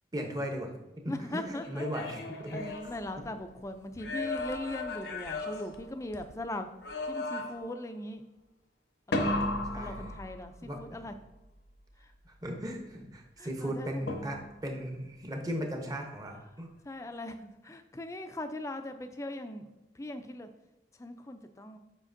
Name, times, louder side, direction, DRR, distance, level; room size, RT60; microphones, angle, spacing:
voice 1, 0.1-0.7 1.0-3.2 9.2-10.1 10.6-10.8 12.2-16.7, equal, 20° right, 3 dB, 0.8 m, -37 dB
voice 2, 1.1-1.9 2.5-6.7 7.1-8.2 9.1-9.5 9.8-11.1 13.4-14.1 16.9-19.7 19.9-20.5 21.0-21.8, left 1 dB, 15° left, 8 dB, 0.4 m, -40 dB
sound 1, 1.6-3.5 3.9-6.4 6.8-7.8 9.1-10.7 14.1-14.7, left 2 dB, 80° left, 0.8 m, -35 dB
7.3 x 5.1 x 2.6 m, 1.0 s
head